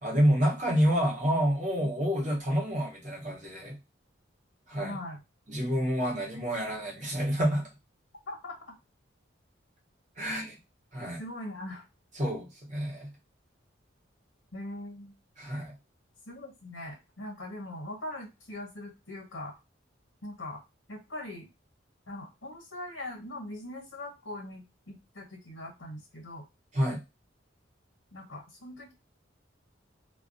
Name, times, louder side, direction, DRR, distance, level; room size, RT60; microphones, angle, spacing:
voice 1, 0.0-3.8 4.7-5.0 5.5-7.7 10.2-10.5 10.9-11.2 12.2-13.1 15.4-15.7 26.7-27.0, equal, 40° right, -1 dB, 0.9 m, -28 dB
voice 2, 4.8-5.2 8.3-8.6 10.2-10.4 11.2-11.8 14.5-15.1 16.3-19.5 20.2-20.6 20.9-21.5 22.1-26.4 28.1-28.9, left 1 dB, 85° left, 1 dB, 0.9 m, -41 dB
2.3 x 2.2 x 2.5 m, 0.24 s
head